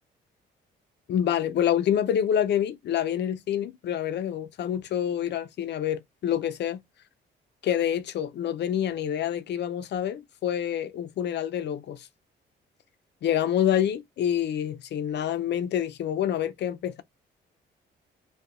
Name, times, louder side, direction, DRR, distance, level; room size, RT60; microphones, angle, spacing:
voice 1, 1.1-6.8 7.6-12.1 13.2-17.0, left 10 dB, 60° left, 0.5 m, -27 dB
2.7 x 2.2 x 3.7 m
cardioid pair, 90°, 20 cm